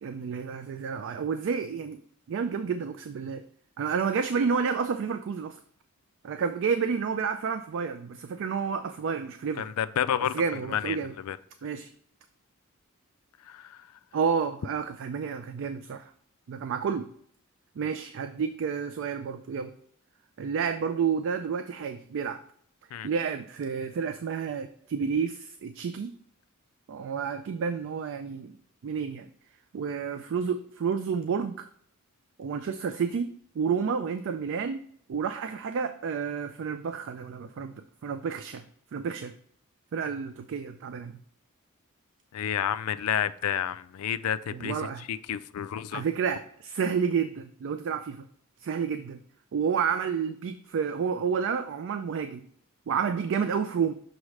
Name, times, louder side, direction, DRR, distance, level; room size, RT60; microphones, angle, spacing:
voice 1, 0.0-2.0 2.3-3.4 3.8-5.6 6.2-9.7 10.3-11.1 11.6-11.9 14.1-16.1 16.5-17.1 17.8-19.7 20.4-22.4 23.0-26.1 26.9-28.5 28.8-29.3 29.7-31.7 32.4-33.3 33.6-34.8 35.1-37.7 38.0-38.6 38.9-39.3 39.9-41.1 44.5-45.0 45.9-48.2 48.6-49.2 49.5-52.4 52.9-53.9, right 6 dB, 60° right, 0.3 m, -30 dB
voice 2, 9.6-10.4 10.7-11.4 13.5-13.8 22.9-23.1 42.3-46.0, left 9 dB, 75° left, 0.3 m, -30 dB
6.2 x 3.2 x 4.8 m
head